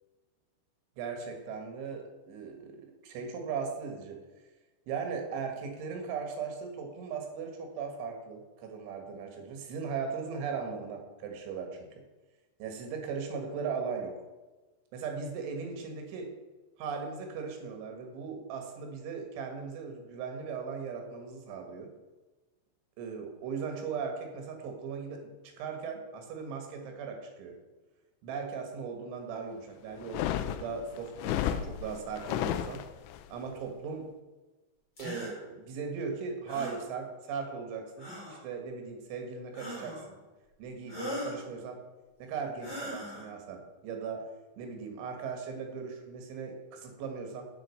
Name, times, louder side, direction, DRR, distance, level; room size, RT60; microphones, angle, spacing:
voice 1, 1.0-4.2 4.9-11.9 12.6-14.2 14.9-16.3 16.8-21.9 23.0-27.6 28.2-32.8 33.3-34.1 35.0-40.2 40.6-41.8 42.2-44.3 44.6-47.5, right 5 dB, 75° right, 3 dB, 3.9 m, -38 dB
sound 1, 30.0-33.2, left 11 dB, 90° left, 2.5 m, -33 dB
sound 2, 35.0-35.3 36.5-36.8 38.0-38.4 39.5-40.1 40.9-41.4 42.6-43.3, equal, 25° left, 4.4 m, -39 dB
7.9 x 7.6 x 6.5 m, 1.2 s
omnidirectional pair, 5.7 m